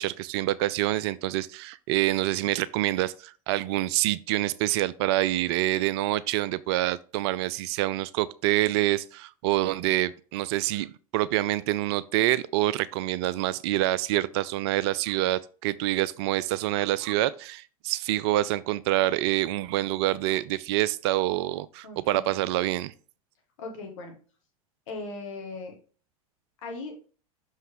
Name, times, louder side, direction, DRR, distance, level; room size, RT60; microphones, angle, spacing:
voice 1, 0.0-10.9 11.1-22.9, right 15 dB, 45° right, 0.4 m, -26 dB
voice 2, 21.8-22.3 23.6-24.1 24.9-25.7 26.6-27.0, left 3 dB, 60° left, 2.3 m, -38 dB
6.1 x 5.3 x 3.6 m
figure-of-eight pair, 80°, 18 cm